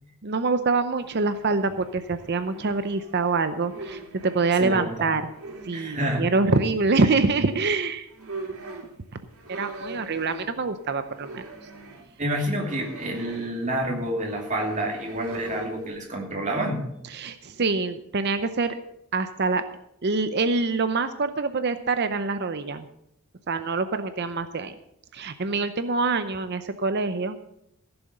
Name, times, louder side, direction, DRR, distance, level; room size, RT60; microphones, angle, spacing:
voice 1, 0.2-5.2 5.6-8.1 9.5-11.4 17.1-18.7 19.1-19.6 20.0-22.9 23.5-24.7 25.1-27.4, right 3 dB, 50° right, 10 dB, 0.7 m, -25 dB
sound 1, 1.0-4.6 5.2-6.4 7.7-7.8 8.1-16.0, right 3 dB, 75° right, 3.1 m, -42 dB
voice 2, 4.6-5.2 5.7-6.3 12.2-16.8, right 1 dB, 35° right, 0 dB, 2.6 m, -28 dB
15.0 x 7.1 x 6.5 m, 0.78 s
head